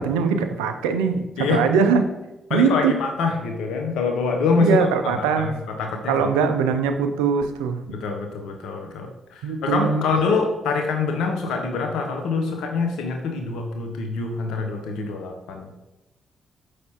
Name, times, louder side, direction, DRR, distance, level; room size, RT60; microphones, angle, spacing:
voice 1, 0.0-2.0 2.5-2.9 4.5-5.6 6.1-7.8 9.4-10.1, right 6 dB, 85° right, 7 dB, 0.3 m, -21 dB
voice 2, 2.5-6.3 7.9-15.7, left 4 dB, 75° left, 2 dB, 0.6 m, -25 dB
5.4 x 3.2 x 2.8 m, 0.97 s
hypercardioid pair, 45°, 0 cm